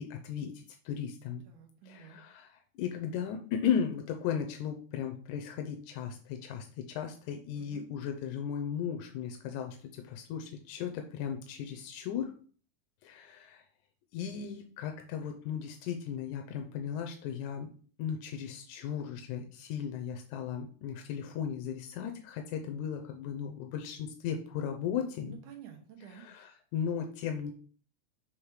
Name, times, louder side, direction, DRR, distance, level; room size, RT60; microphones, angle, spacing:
voice 1, 0.0-1.4 1.9-12.3 13.0-13.6 14.1-17.7 18.0-25.4 26.1-27.5, left 8 dB, 85° left, 4 dB, 2.1 m, -36 dB
voice 2, 1.5-2.2 7.5-7.8 25.2-26.3, right 8 dB, 85° right, 3 dB, 2.7 m, -50 dB
6.5 x 3.4 x 4.7 m, 0.42 s
omnidirectional pair, 3.5 m